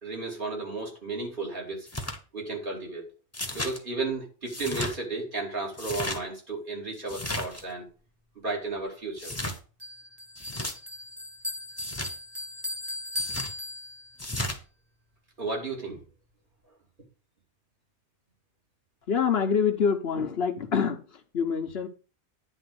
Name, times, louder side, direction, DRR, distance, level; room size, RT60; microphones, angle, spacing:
voice 1, 0.0-1.9 2.3-3.1 3.5-7.9 8.4-9.4 15.4-16.0, right 3 dB, 50° right, 3.0 m, -33 dB
sound 1, 1.9-2.2 3.3-3.8 4.5-4.9 5.7-6.2 7.1-7.6 9.2-9.6 10.4-10.7 11.8-12.1 13.2-13.5 14.2-14.6, left 1 dB, 15° left, 1.2 m, -34 dB
Bell, 9.8-14.3, left 2 dB, 15° right, 1.4 m, -37 dB
voice 2, 19.1-21.9, left 6 dB, 65° left, 1.2 m, -26 dB
10.0 x 3.7 x 6.9 m
omnidirectional pair, 1.2 m